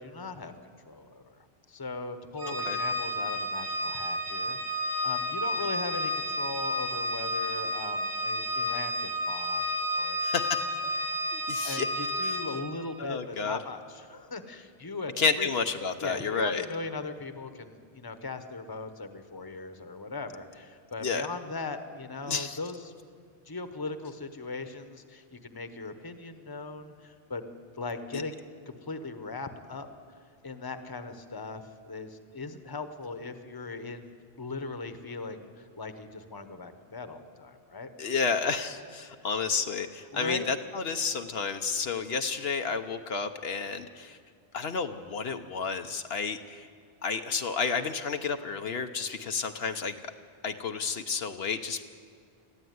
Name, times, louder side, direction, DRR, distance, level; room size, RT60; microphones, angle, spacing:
voice 1, 0.0-10.9 11.6-15.5 16.0-22.9 23.5-27.4 27.8-29.9 30.4-34.1 34.4-37.9 40.1-40.5, left 3 dB, 20° left, 9 dB, 1.0 m, -39 dB
Organ, 2.4-12.8, equal, 80° right, 2.6 m, -31 dB
voice 2, 10.2-10.7 11.3-11.9 12.2-12.3 13.0-13.6 15.2-16.7 21.0-21.3 22.3-22.6 28.1-28.2 38.0-44.2 44.5-46.7 47.0-50.0 50.4-51.8, left 5 dB, 70° left, 7 dB, 1.1 m, -31 dB
21.0 x 14.0 x 9.5 m, 2.1 s
omnidirectional pair, 1.1 m